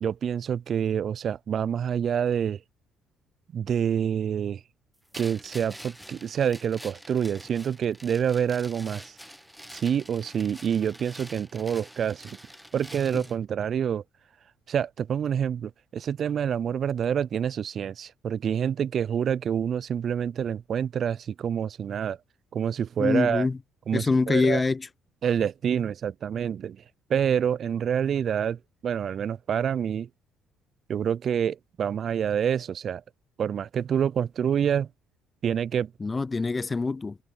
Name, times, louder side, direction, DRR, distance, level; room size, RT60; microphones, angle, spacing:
voice 1, 0.0-2.6 3.5-4.6 5.2-9.2 9.7-12.4 12.7-14.0 14.7-22.2 22.5-23.5 23.9-24.6 25.2-26.8 27.1-30.1 30.9-33.0 33.4-34.9 35.4-35.9, right 8 dB, 55° right, 0.3 m, -27 dB
sound 1, 5.1-13.4, equal, 5° right, 1.1 m, -46 dB
voice 2, 23.0-23.6 23.9-24.9 36.0-37.2, left 3 dB, 25° left, 0.4 m, -24 dB
supercardioid pair, 65°, 0 cm